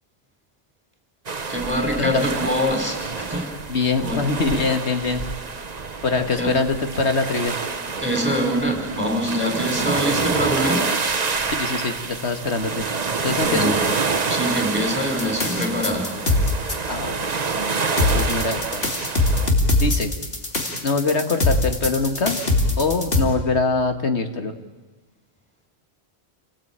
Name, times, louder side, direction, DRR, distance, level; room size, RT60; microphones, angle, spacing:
sound 1, 1.3-19.5, right 4 dB, 40° right, 1.1 m, -27 dB
voice 1, 1.5-3.5 4.0-4.2 6.4-6.5 8.0-10.8 13.4-13.8 14.3-16.1, equal, 10° right, 2 dB, 5.2 m, -24 dB
voice 2, 3.7-5.2 6.0-7.6 11.6-12.9 13.2-13.7 16.9-18.8 19.8-20.1 20.8-22.4 22.8-24.5, left 3 dB, 85° left, 7 dB, 2.1 m, -23 dB
sound 2, 15.2-16.7 18.0-23.2, left 2 dB, 65° left, 3.1 m, -21 dB
28.5 x 18.0 x 8.9 m, 1.2 s
omnidirectional pair, 1.1 m